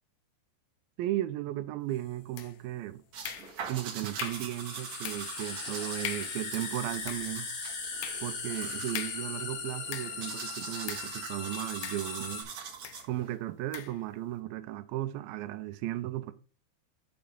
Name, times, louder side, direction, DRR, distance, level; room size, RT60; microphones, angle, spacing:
voice 1, 1.0-3.0 3.7-7.5 8.2-12.5 13.1-16.3, right 14 dB, 80° right, 2.4 m, -35 dB
sound 1, 1.9-2.0 4.1-12.4, left 4 dB, 60° left, 3.5 m, -39 dB
sound 2, 2.4-2.8 3.2-3.8 4.2-4.6 5.0-5.4 5.7-5.8 6.0-6.5 6.9-10.3 10.9-11.2 11.8-12.4 12.8-13.1 13.7-14.0, left 11 dB, 85° left, 2.9 m, -41 dB
sound 3, 3.1-13.4, right 6 dB, 55° right, 2.4 m, -43 dB
6.9 x 6.7 x 5.2 m
omnidirectional pair, 4.5 m